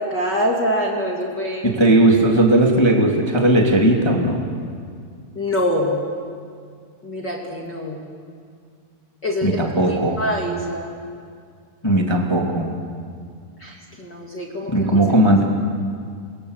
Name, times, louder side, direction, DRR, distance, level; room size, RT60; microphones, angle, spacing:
voice 1, 0.0-1.7 5.3-6.0 7.0-8.0 9.2-10.9 13.6-14.9, equal, 30° left, -2 dB, 2.7 m, -25 dB
voice 2, 1.6-4.4 9.4-10.2 11.8-12.7 14.7-15.4, right 1 dB, 10° left, 0 dB, 1.5 m, -17 dB
29.0 x 22.0 x 8.2 m, 2.2 s
omnidirectional pair, 4.7 m